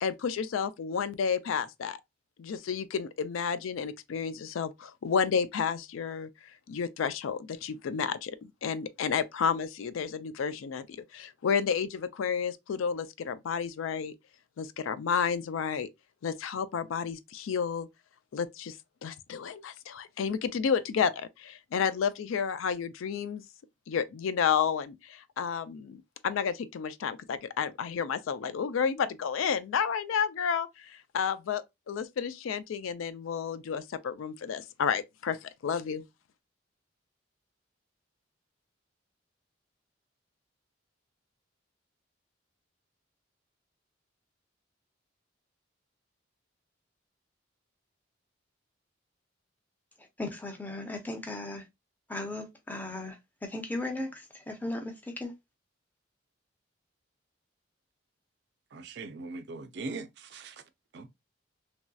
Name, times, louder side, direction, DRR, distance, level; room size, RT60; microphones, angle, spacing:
voice 1, 0.0-2.0 2.4-6.3 6.7-14.1 14.6-15.9 16.2-17.9 18.3-18.8 19.0-23.4 23.9-36.0, left 6 dB, 90° left, 0.4 m, -31 dB
voice 2, 50.2-51.6 52.1-53.2 53.4-55.3, left 2 dB, 10° left, 0.5 m, -36 dB
voice 3, 58.7-60.6 60.9-61.1, right 3 dB, 55° right, 0.4 m, -40 dB
3.0 x 2.7 x 2.2 m
head